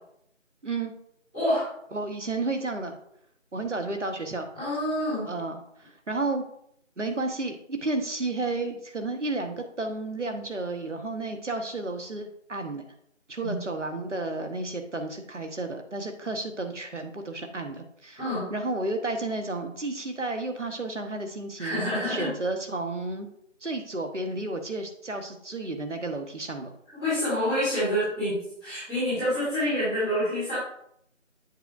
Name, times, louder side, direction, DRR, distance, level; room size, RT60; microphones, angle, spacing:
voice 1, 1.3-1.7 4.5-5.3 13.4-13.6 18.2-18.5 21.6-22.3 27.0-30.6, equal, 5° right, -25 dB, 2.2 m, -27 dB
voice 2, 1.9-3.0 3.5-4.5 5.3-6.4 7.0-12.8 13.3-18.2 18.5-23.3 23.6-26.7, right 2 dB, 65° right, 5 dB, 1.1 m, -32 dB
8.0 x 5.8 x 2.5 m, 0.71 s
figure-of-eight pair, 170°, 39 cm